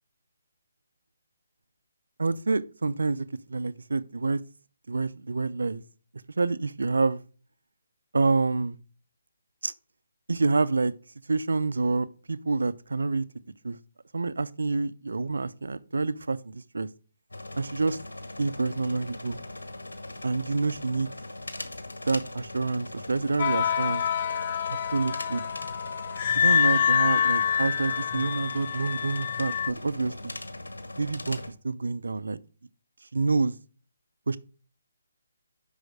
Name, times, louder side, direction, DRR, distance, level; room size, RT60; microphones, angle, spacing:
voice 1, 2.2-4.4 4.9-5.8 6.4-7.2 8.1-8.8 9.6-9.7 10.3-10.9 11.3-13.2 13.6-13.8 14.1-16.9 17.6-18.0 18.4-19.4 20.2-21.1 22.1-24.1 24.7-25.4 26.3-30.3 31.0-32.4 33.1-33.5 34.3-34.4, right 3 dB, 80° right, 0.6 m, -27 dB
sound 1, 17.3-31.5, left 2 dB, 85° left, 1.4 m, -40 dB
sound 2, 23.4-29.7, left 8 dB, 40° left, 0.4 m, -26 dB
6.4 x 5.6 x 4.8 m
figure-of-eight pair, 150°, 0 cm